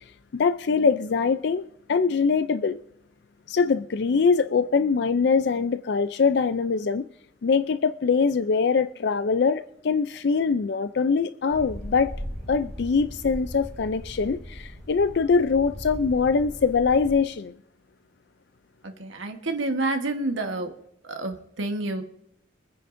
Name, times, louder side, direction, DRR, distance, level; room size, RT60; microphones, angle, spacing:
voice 1, 0.3-2.8 3.5-7.0 7.4-12.1 12.5-17.5, left 5 dB, 60° left, 0.4 m, -23 dB
sound 1, 11.5-17.1, equal, 5° left, 6.1 m, -38 dB
voice 2, 18.8-20.7 21.0-22.0, right 2 dB, 85° right, 1.3 m, -29 dB
24.5 x 9.9 x 2.6 m
head